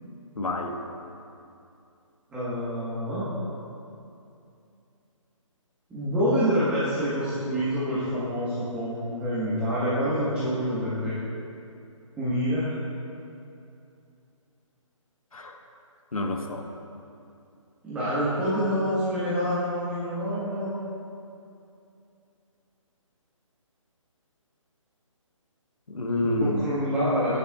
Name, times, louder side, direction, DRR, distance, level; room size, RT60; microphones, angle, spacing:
voice 1, 0.4-0.8 15.3-15.6 16.1-16.7 25.9-26.6, left 2 dB, 90° left, 3 dB, 1.1 m, -28 dB
voice 2, 2.3-3.3 5.9-11.1 12.2-12.7 17.8-20.7 26.4-27.4, equal, 5° right, -12 dB, 1.2 m, -27 dB
12.0 x 9.4 x 2.3 m, 2.6 s
hypercardioid pair, 155°, 17 cm